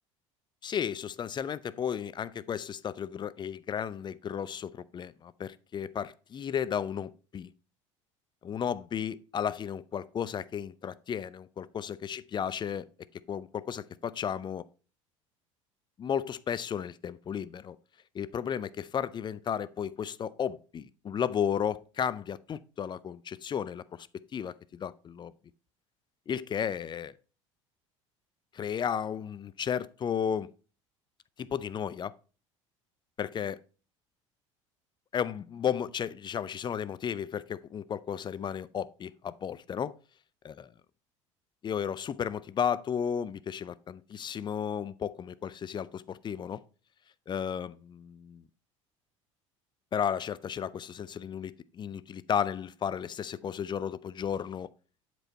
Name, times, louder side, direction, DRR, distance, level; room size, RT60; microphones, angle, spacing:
voice 1, 0.6-7.5 8.4-12.9 13.3-14.6 16.0-17.8 18.1-25.3 26.3-27.1 28.5-30.5 31.4-32.1 33.2-33.6 35.1-39.9 40.4-40.5 41.6-46.6 47.3-48.4 49.9-54.7, left 8 dB, 30° left, 0.4 m, -34 dB
7.8 x 4.6 x 4.1 m
hypercardioid pair, 70°, 16 cm